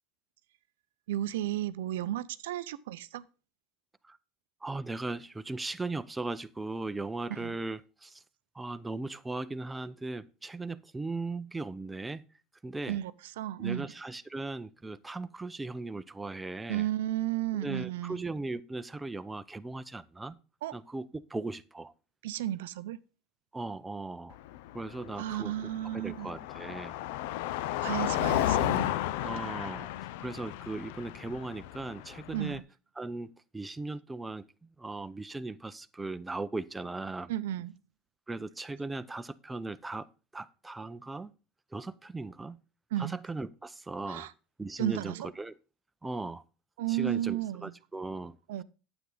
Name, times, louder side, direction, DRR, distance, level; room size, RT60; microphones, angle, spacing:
voice 1, 1.1-3.2 7.3-7.6 12.9-13.9 16.7-18.2 20.6-20.7 22.2-23.0 25.2-26.3 27.8-29.0 32.3-32.6 37.3-37.7 42.9-43.2 44.1-44.3 44.8-45.3 46.8-47.7 48.5-48.6, right 13 dB, 85° right, 0.5 m, -33 dB
voice 2, 4.6-8.2 8.5-12.2 12.6-13.0 13.6-16.9 17.5-20.4 20.7-21.9 23.5-24.4 24.7-25.5 25.9-27.0 29.2-32.6 33.0-37.3 38.3-40.1 40.3-41.3 41.7-42.6 43.0-44.3 44.6-45.5 46.0-46.4 46.9-48.4, right 2 dB, 10° right, 0.6 m, -38 dB
Car passing by, 24.3-32.6, left 14 dB, 75° left, 0.4 m, -33 dB
9.3 x 8.0 x 3.9 m
supercardioid pair, 105°, 0 cm